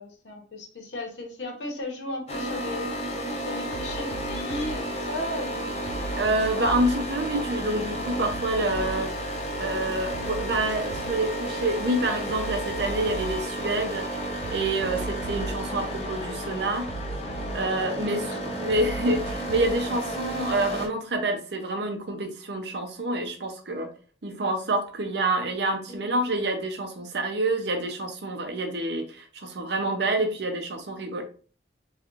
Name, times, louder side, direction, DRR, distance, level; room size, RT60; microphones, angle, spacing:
voice 1, 0.0-2.9 3.4-5.7 18.0-18.4 25.9-26.0, left 1 dB, 75° left, 2 dB, 0.9 m, -35 dB
sound 1, 2.3-20.9, equal, 35° left, 0.7 m, -32 dB
sound 2, 2.7-2.8 3.1-5.3 5.6-9.6 9.9-11.4 11.6-13.9 14.2-18.2 18.5-19.8, right 4 dB, 90° right, 0.3 m, -39 dB
voice 2, 6.2-9.1 9.6-14.1 14.5-16.9 17.5-23.9 24.2-31.2, right 1 dB, 65° right, 4 dB, 0.7 m, -27 dB
3.2 x 3.0 x 2.5 m, 0.39 s
head